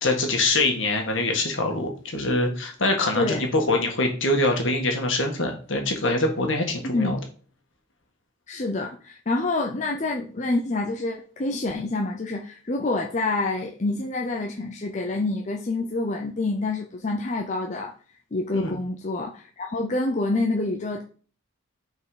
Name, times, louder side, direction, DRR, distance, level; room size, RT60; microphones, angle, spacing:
voice 1, 0.0-7.2 18.5-18.8, left 2 dB, 60° left, 2 dB, 1.7 m, -24 dB
voice 2, 6.8-7.2 8.5-17.9 18.3-21.0, left 2 dB, 35° left, 2 dB, 0.6 m, -27 dB
5.7 x 4.5 x 5.0 m, 0.41 s
head